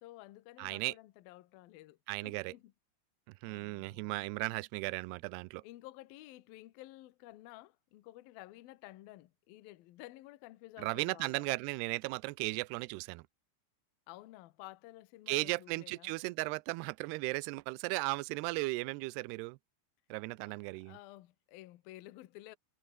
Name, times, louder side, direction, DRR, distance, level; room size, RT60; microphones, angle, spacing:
voice 1, 0.0-2.7 3.5-4.1 5.6-11.5 14.1-16.1 20.4-22.6, left 17 dB, 70° left, 2.4 m, -53 dB
voice 2, 0.6-0.9 2.1-2.5 3.4-5.6 10.8-13.2 15.3-19.6 20.1-21.0, right 23 dB, 85° right, 2.4 m, -36 dB
omnidirectional pair, 5.3 m